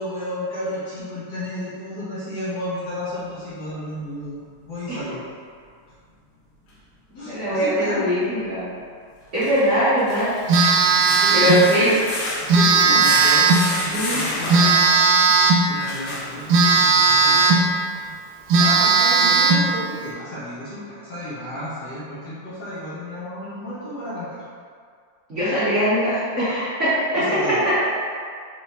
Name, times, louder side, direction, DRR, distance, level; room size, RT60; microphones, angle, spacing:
voice 1, 0.0-5.2 7.1-8.1 10.9-12.0 12.5-15.2 15.6-17.8 18.5-24.4 27.1-27.6, left 1 dB, 55° left, -11 dB, 1.4 m, -32 dB
sound 1, 6.7-6.8 9.2-16.8 17.4-17.5 18.0-18.1, left 2 dB, 80° left, 1.8 m, -31 dB
voice 2, 7.2-8.6 9.3-10.3 11.3-11.9 13.9-14.2 25.3-27.2, equal, 45° right, -14 dB, 1.1 m, -21 dB
Telephone, 10.5-11.7 12.5-13.7 14.5-15.7 16.5-17.7 18.1-18.2 18.5-19.7, right 4 dB, 85° right, 1.5 m, -16 dB
4.3 x 3.4 x 2.9 m, 2.1 s
omnidirectional pair, 2.4 m